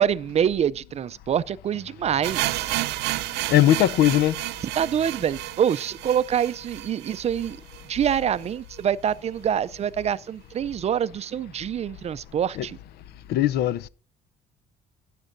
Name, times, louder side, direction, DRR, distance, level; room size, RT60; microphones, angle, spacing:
voice 1, 0.0-2.7 4.8-7.6 7.9-12.8, right 9 dB, 40° right, 0.4 m, -25 dB
sound 1, 2.2-8.1 8.4-8.5 8.7-8.8 9.4-9.5, right 17 dB, 85° right, 0.6 m, -31 dB
voice 2, 3.5-4.4 12.6-12.7 13.3-13.9, left 13 dB, 70° left, 0.6 m, -19 dB
13.5 x 10.0 x 2.6 m
cardioid pair, 110°, 17 cm